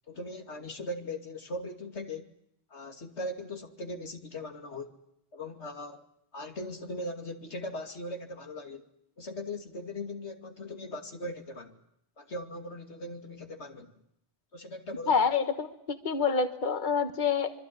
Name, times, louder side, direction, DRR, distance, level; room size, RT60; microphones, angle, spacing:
voice 1, 0.1-2.3 2.7-5.0 5.3-6.0 6.3-8.9 9.2-11.8 12.2-13.9 14.5-15.2, left 1 dB, 90° left, 2.8 m, -39 dB
voice 2, 15.1-17.5, left 6 dB, 45° left, 1.5 m, -27 dB
25.5 x 24.0 x 9.7 m
omnidirectional pair, 1.1 m